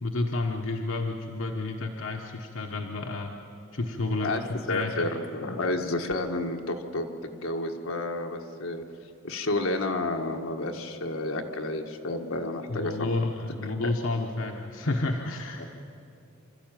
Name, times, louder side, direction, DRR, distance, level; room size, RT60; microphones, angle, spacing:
voice 1, 0.0-3.3 3.7-4.3 4.7-5.1 12.7-15.6, left 2 dB, 70° left, 2 dB, 1.2 m, -30 dB
voice 2, 4.7-8.8 9.2-13.1 13.8-13.9 15.6-15.7, left 2 dB, 85° left, 3 dB, 1.6 m, -30 dB
26.0 x 13.0 x 9.1 m, 2.7 s
head